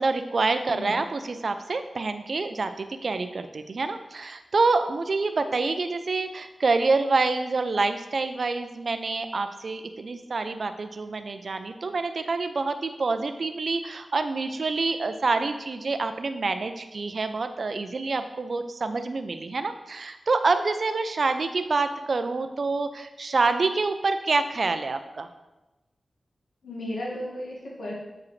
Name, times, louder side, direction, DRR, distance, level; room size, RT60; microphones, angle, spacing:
voice 1, 0.0-25.3, right 3 dB, 50° right, 9 dB, 0.4 m, -27 dB
voice 2, 26.6-27.9, left 1 dB, 75° left, -5 dB, 1.8 m, -34 dB
6.9 x 4.9 x 3.1 m, 1.0 s
wide cardioid pair, 140°, 0 cm